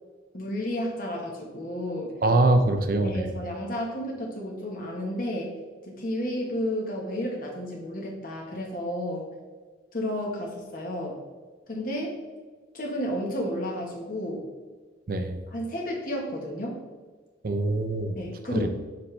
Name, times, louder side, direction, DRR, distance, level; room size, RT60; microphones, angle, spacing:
voice 1, 0.3-2.1 3.0-5.5 5.8-9.3 9.9-11.2 11.7-12.2 12.7-14.4 15.5-16.8 18.1-18.7, equal, 50° left, -1 dB, 1.2 m, -32 dB
voice 2, 2.2-3.3 15.1-15.4 17.4-18.1 18.5-18.7, right 2 dB, 50° right, 6 dB, 0.5 m, -23 dB
6.9 x 4.2 x 3.2 m, 1.4 s
head